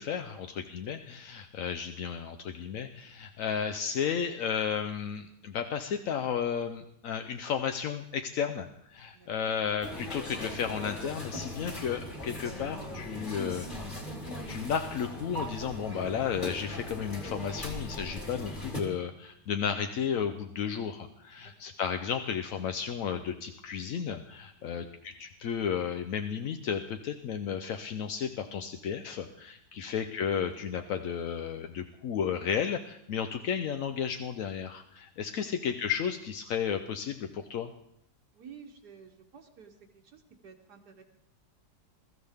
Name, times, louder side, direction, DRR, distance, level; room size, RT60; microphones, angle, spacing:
voice 1, 0.0-13.7 14.5-37.7, left 7 dB, 65° left, 6 dB, 0.8 m, -33 dB
voice 2, 9.1-9.5 21.4-21.7 24.6-24.9 29.7-29.9 35.4-35.6 38.3-41.0, right 6 dB, 65° right, 3 dB, 1.6 m, -53 dB
sound 1, 9.8-18.8, left 1 dB, 25° left, 2.3 m, -39 dB
21.5 x 13.0 x 3.5 m, 0.76 s
omnidirectional pair, 2.0 m